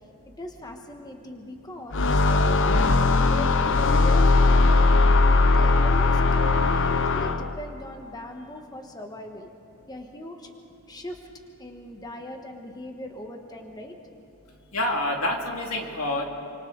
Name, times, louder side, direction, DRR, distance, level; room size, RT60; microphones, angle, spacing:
voice 1, 0.2-5.0 5.5-9.5 9.9-10.5 10.9-11.3 11.6-14.0, left 1 dB, 20° left, 3 dB, 1.4 m, -40 dB
sound 1, 1.9-7.6, left 3 dB, 55° left, 0.8 m, -19 dB
voice 2, 14.7-16.2, left 1 dB, 75° left, 1 dB, 2.6 m, -27 dB
28.0 x 26.0 x 4.0 m, 2.8 s
head